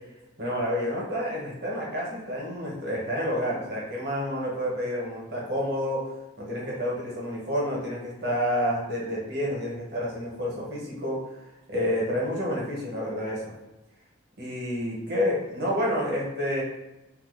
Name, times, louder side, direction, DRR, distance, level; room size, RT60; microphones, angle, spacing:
voice 1, 0.4-6.1 6.4-11.2 11.7-13.5 14.4-16.6, equal, 55° right, -4 dB, 1.1 m, -29 dB
2.7 x 2.3 x 3.8 m, 1.0 s
head